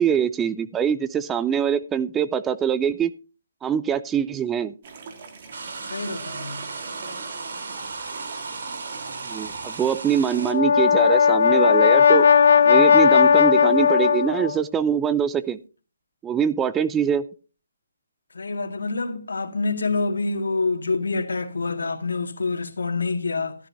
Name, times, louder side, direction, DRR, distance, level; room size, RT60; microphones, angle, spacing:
voice 1, 0.0-3.1 3.6-4.7 9.3-12.3 12.7-15.6 16.2-17.3, right 8 dB, 10° right, 0.5 m, -23 dB
sound 1, 4.8-10.0, right 4 dB, 45° right, 2.8 m, -42 dB
sound 2, 5.5-10.5, right 4 dB, 60° right, 3.0 m, -35 dB
voice 2, 5.9-6.6 18.3-23.6, left 3 dB, 75° left, 2.1 m, -26 dB
Brass instrument, 10.3-14.6, left 6 dB, 60° left, 0.7 m, -16 dB
14.5 x 13.0 x 2.7 m
figure-of-eight pair, 150°, 0 cm